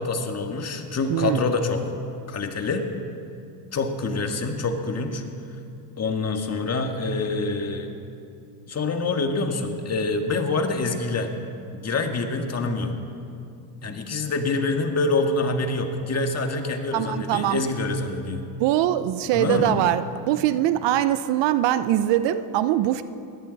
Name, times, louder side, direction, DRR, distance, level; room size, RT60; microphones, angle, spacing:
voice 1, 0.0-1.9 2.3-2.9 3.7-5.2 6.0-7.9 8.7-11.3 11.8-12.9 13.8-18.4 19.3-19.8, left 3 dB, 30° left, 5 dB, 1.8 m, -26 dB
voice 2, 1.1-1.5 16.9-17.6 18.6-23.0, right 13 dB, 60° right, 13 dB, 0.8 m, -22 dB
20.5 x 17.0 x 4.1 m, 2.5 s
supercardioid pair, 95°, 50 cm